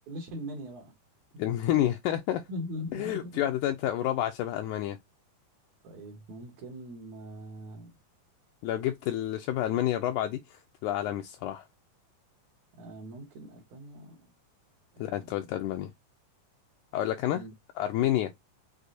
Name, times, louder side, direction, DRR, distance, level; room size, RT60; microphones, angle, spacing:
voice 1, 0.1-0.9 2.5-3.4 5.8-8.0 12.8-14.3 14.9-15.5 17.3-17.5, equal, 65° right, 2.1 m, -41 dB
voice 2, 1.4-2.4 2.9-5.0 8.6-11.7 15.0-15.9 16.9-17.4 17.8-18.3, left 12 dB, 85° left, 1.8 m, -29 dB
6.3 x 2.6 x 2.6 m
omnidirectional pair, 4.0 m